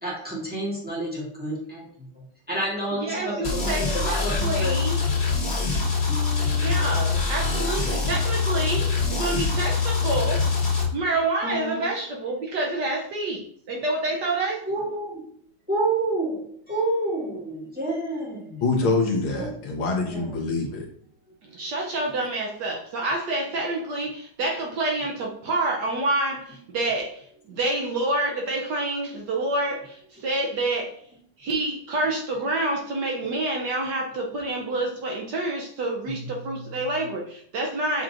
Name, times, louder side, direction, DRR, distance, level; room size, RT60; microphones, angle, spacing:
voice 1, 0.0-1.9 2.5-4.7 5.7-5.8 6.1-6.9 11.4-11.9 14.7-15.2 15.7-18.6 19.3-19.5 20.0-20.3 27.5-27.6 36.1-36.3, right 2 dB, 5° right, -6 dB, 1.3 m, -29 dB
voice 2, 3.0-5.0 5.3-5.4 6.5-10.4 10.9-14.6 21.4-31.0 31.4-38.0, right 2 dB, 65° right, 0 dB, 1.2 m, -28 dB
sound 1, 3.4-10.8, left 4 dB, 50° left, 2.1 m, -24 dB
voice 3, 18.6-20.9, left 3 dB, 85° left, 0 dB, 1.9 m, -25 dB
7.1 x 3.0 x 2.5 m, 0.64 s
omnidirectional pair, 2.2 m